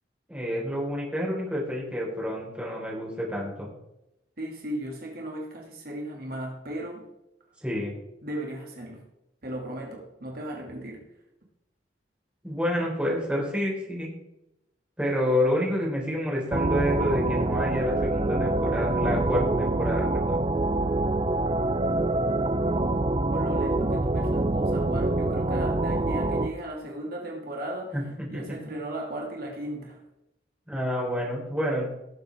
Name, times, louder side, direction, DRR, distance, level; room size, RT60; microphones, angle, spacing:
voice 1, 0.3-3.7 7.6-7.9 12.4-14.1 15.0-20.4 27.9-28.0 28.3-28.4 30.7-31.9, equal, 5° right, -4 dB, 4.3 m, -28 dB
voice 2, 4.4-7.1 8.2-9.0 9.4-11.0 23.3-30.0, right 1 dB, 55° right, 0 dB, 2.3 m, -36 dB
sound 1, 16.5-26.5, right 2 dB, 30° right, 0.6 m, -25 dB
18.5 x 7.8 x 3.5 m, 0.87 s
head